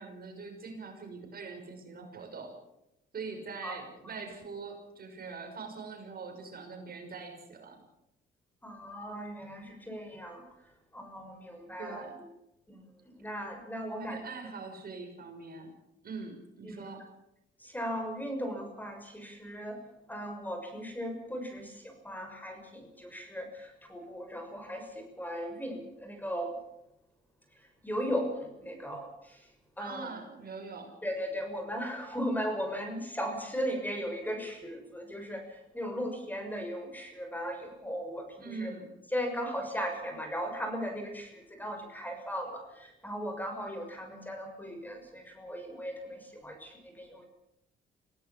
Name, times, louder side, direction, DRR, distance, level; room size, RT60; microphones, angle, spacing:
voice 1, 0.0-2.6 3.1-7.8 11.8-12.2 14.0-15.7 16.0-17.1 29.8-31.0 38.4-38.9, right 4 dB, 50° right, 4 dB, 6.3 m, -43 dB
voice 2, 8.6-10.4 10.9-12.1 12.7-14.2 16.6-16.9 17.6-19.8 20.1-26.5 27.6-29.5 29.8-30.1 31.0-38.7 39.1-47.3, equal, 10° left, 4 dB, 6.4 m, -37 dB
25.5 x 17.0 x 7.3 m, 0.85 s
cardioid pair, 90°, 20 cm